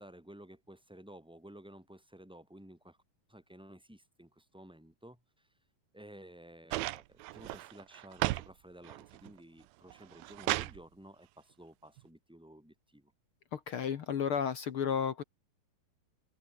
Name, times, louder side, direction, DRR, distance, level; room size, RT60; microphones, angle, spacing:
voice 1, 0.0-3.0 3.3-5.5 5.9-13.1, right 1 dB, ahead, 7.5 m, -54 dB
sound 1, 6.7-8.5 8.8-9.4 9.9-10.8 12.0-12.1, right 18 dB, 90° right, 2.5 m, -35 dB
voice 2, 13.5-15.2, left 7 dB, 65° left, 1.3 m, -32 dB
open air
omnidirectional pair, 4.3 m